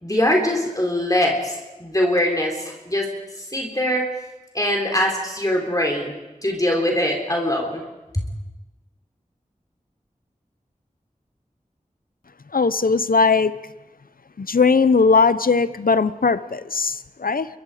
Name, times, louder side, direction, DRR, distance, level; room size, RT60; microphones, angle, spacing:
voice 1, 0.0-3.1 3.4-4.1 4.5-6.2 6.4-7.8 8.1-8.2, left 1 dB, 25° left, 0 dB, 3.7 m, -22 dB
voice 2, 12.5-13.5 14.4-17.5, left 4 dB, 90° left, 14 dB, 0.7 m, -19 dB
28.0 x 22.5 x 5.0 m, 1.1 s
wide cardioid pair, 55°, 14 cm